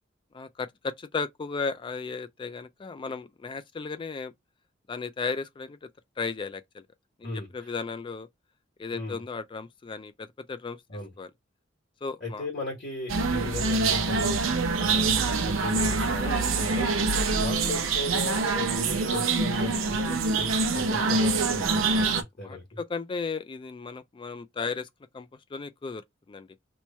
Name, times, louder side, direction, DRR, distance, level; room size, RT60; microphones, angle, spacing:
voice 1, 0.3-4.3 4.9-5.9 6.2-6.9 7.2-8.3 8.8-10.8 11.2-11.3 12.0-12.5 16.2-16.5 17.2-17.4 22.4-24.9 25.1-26.5, left 4 dB, 25° left, 0.3 m, -35 dB
voice 2, 7.2-7.7 8.9-9.2 10.9-11.1 12.2-22.8, left 2 dB, 50° left, 1.3 m, -37 dB
sound 1, 13.1-22.2, right 3 dB, 80° right, 0.7 m, -25 dB
3.0 x 2.2 x 4.0 m
head